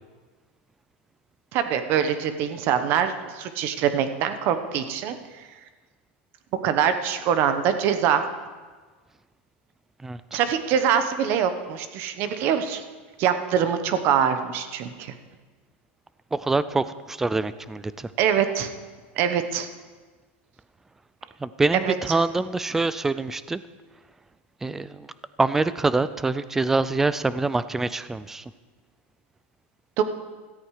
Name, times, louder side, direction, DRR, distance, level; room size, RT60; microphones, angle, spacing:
voice 1, 1.5-5.4 6.6-8.2 10.3-12.8 13.2-15.1 18.2-18.7 19.2-19.7 21.7-21.9 30.0-30.1, right 8 dB, 35° right, 9 dB, 1.1 m, -24 dB
voice 2, 16.3-18.1 21.4-23.6 24.6-25.1 25.4-28.4, right 3 dB, 5° right, 15 dB, 0.3 m, -25 dB
16.5 x 13.5 x 4.9 m, 1.4 s
supercardioid pair, 175°, 6 cm